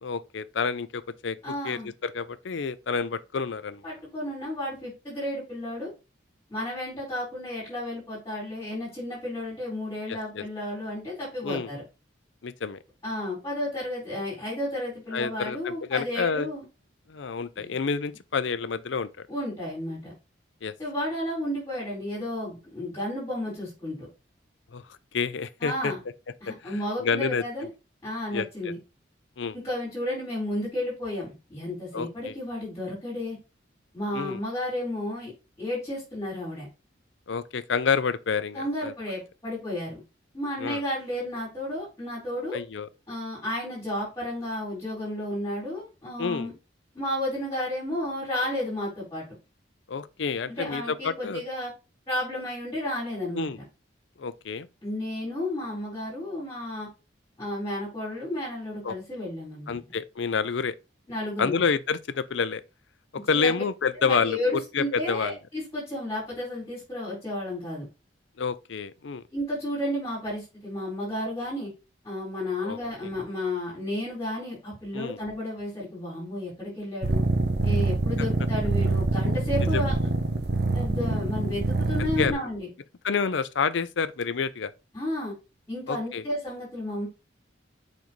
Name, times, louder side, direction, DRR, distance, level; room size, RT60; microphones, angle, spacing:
voice 1, 0.0-1.4 1.6-3.8 10.1-10.4 11.4-11.7 12.4-12.8 15.1-16.5 17.1-19.1 20.6-20.7 24.7-24.8 25.1-25.9 26.5-27.4 28.3-28.5 29.4-29.6 31.9-32.3 34.1-34.4 37.3-38.9 40.6-40.8 42.5-42.9 46.2-46.5 49.9-51.4 53.3-53.6 54.2-54.7 58.8-59.0 59.7-60.8 61.4-62.6 63.1-65.4 68.4-69.2 72.6-73.1 74.9-75.2 79.7-79.9 82.2-82.3 83.0-84.7 85.9-86.2, left 5 dB, 75° left, 0.5 m, -29 dB
voice 2, 1.4-1.9 3.8-5.9 6.5-11.8 13.0-16.6 17.5-17.7 19.3-20.1 20.8-24.0 25.6-26.0 26.4-27.7 28.0-28.8 29.6-33.4 33.9-35.3 35.6-36.7 38.5-40.0 40.3-42.6 43.1-46.5 46.9-49.3 50.5-51.7 52.1-53.5 54.8-56.9 57.4-59.8 61.1-61.7 63.3-63.5 64.0-67.8 69.3-71.7 72.0-77.2 77.6-80.0 80.7-82.7 84.9-85.3 85.7-87.1, left 1 dB, 15° left, 4.5 m, -32 dB
sound 1, 77.0-82.3, right 2 dB, 60° right, 0.9 m, -25 dB
7.2 x 5.3 x 3.1 m
head